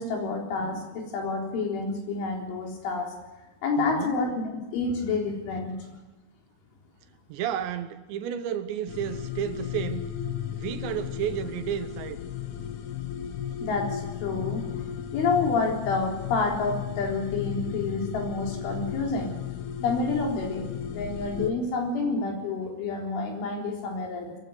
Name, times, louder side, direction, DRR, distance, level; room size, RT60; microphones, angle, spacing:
voice 1, 0.0-3.1 3.6-5.8 13.6-14.6 15.1-19.4 19.8-24.4, left 3 dB, 85° left, 6.4 m, -29 dB
voice 2, 3.8-4.2 5.5-5.8 7.3-10.1 10.5-12.2, right 10 dB, 75° right, 3.2 m, -32 dB
sound 1, 8.9-21.5, left 9 dB, 65° left, 3.0 m, -35 dB
22.5 x 15.5 x 9.5 m
omnidirectional pair, 5.4 m